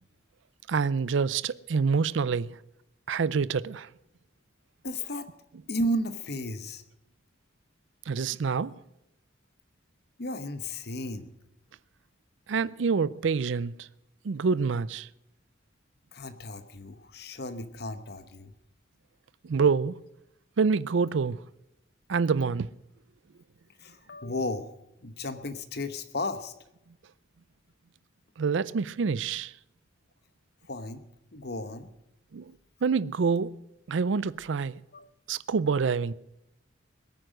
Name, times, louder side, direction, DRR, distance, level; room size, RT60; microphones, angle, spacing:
voice 1, 0.7-2.5 3.1-3.9 8.1-8.8 12.5-13.9 14.2-15.1 19.4-20.0 20.6-21.4 22.1-22.7 28.4-29.5 32.3-32.5 32.8-33.6 33.9-34.8 35.3-36.1, right 5 dB, 75° right, 0.5 m, -27 dB
voice 2, 4.8-5.3 5.7-6.8 10.2-11.3 16.1-18.5 23.8-24.7 25.0-26.5 30.6-31.0 31.3-31.9 34.9-35.1, left 1 dB, 55° left, 1.0 m, -34 dB
21.0 x 9.3 x 6.3 m
head